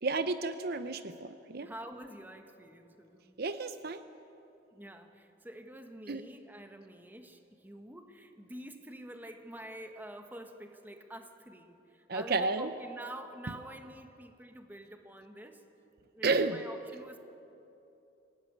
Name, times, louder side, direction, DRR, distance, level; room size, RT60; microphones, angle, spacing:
voice 1, 0.0-1.7 3.4-4.0 6.1-6.2 12.1-12.7 16.2-16.6, right 3 dB, 55° right, 11 dB, 0.8 m, -31 dB
voice 2, 1.6-3.4 4.7-15.6 16.1-17.2, right 1 dB, 10° right, 6 dB, 1.4 m, -47 dB
24.5 x 17.0 x 9.7 m, 2.9 s
head